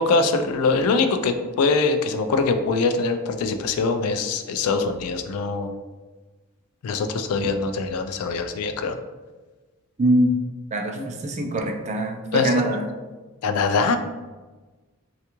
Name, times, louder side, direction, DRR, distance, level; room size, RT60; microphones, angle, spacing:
voice 1, 0.0-5.7 6.8-9.0 11.0-11.1 12.3-12.8 13.4-14.0, left 4 dB, 80° left, 7 dB, 0.3 m, -23 dB
voice 2, 10.0-10.3 10.7-12.8, right 1 dB, 30° right, 2 dB, 0.3 m, -23 dB
3.4 x 2.3 x 2.9 m, 1.3 s
head